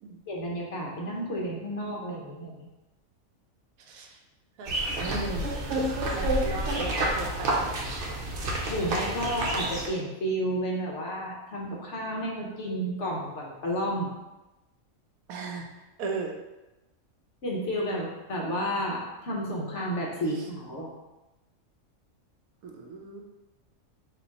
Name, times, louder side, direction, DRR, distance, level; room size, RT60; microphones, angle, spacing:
voice 1, 0.3-2.7 8.7-14.1 17.4-20.9, equal, 60° left, -3 dB, 1.1 m, -31 dB
voice 2, 4.6-7.8 15.3-15.6 16.0-16.3 22.6-23.2, right 4 dB, 85° right, 1 dB, 1.1 m, -36 dB
sound 1, 4.7-9.9, right 1 dB, 60° right, 1.0 m, -29 dB
4.2 x 2.5 x 4.0 m, 1.0 s
omnidirectional pair, 1.5 m